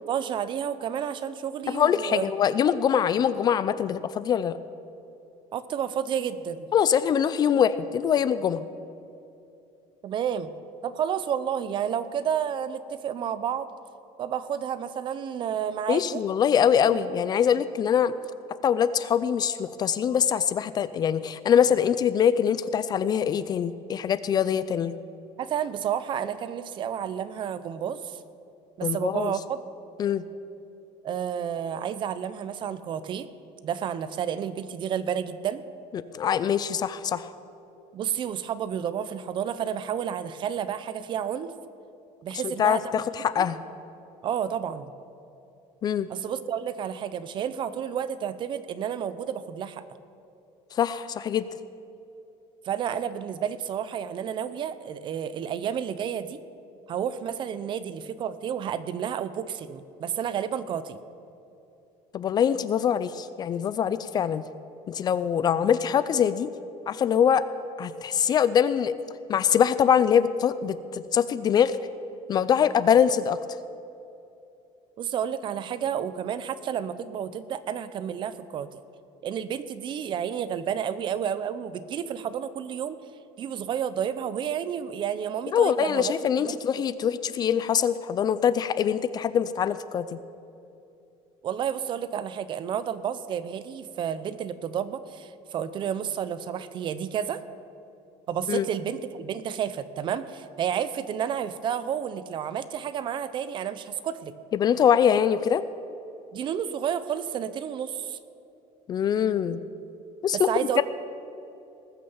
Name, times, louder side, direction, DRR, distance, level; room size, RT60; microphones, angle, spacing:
voice 1, 0.0-2.2 5.5-6.7 10.0-10.5 10.8-13.7 14.2-16.2 25.4-28.2 28.8-29.6 31.0-33.3 33.6-35.6 37.9-41.5 42.2-42.8 43.4-43.5 44.2-44.9 46.1-49.8 52.6-56.4 56.9-61.0 75.0-78.8 79.2-83.0 83.4-86.1 86.4-86.8 91.4-97.4 98.3-104.3 106.3-108.2 110.3-110.8, right 8 dB, 40° right, 14 dB, 0.6 m, -31 dB
voice 2, 1.7-4.6 6.7-8.6 15.9-18.1 18.6-24.9 28.8-29.4 30.0-30.2 35.9-37.3 42.4-43.6 45.8-46.1 50.7-51.5 62.1-64.4 64.9-66.5 66.9-67.4 67.8-69.0 69.3-71.8 72.3-73.4 85.5-90.2 98.5-98.7 104.5-105.6 108.9-109.6 110.2-110.8, left 8 dB, 30° left, 15 dB, 0.4 m, -23 dB
19.5 x 6.6 x 7.1 m, 2.8 s
cardioid pair, 150°, 13 cm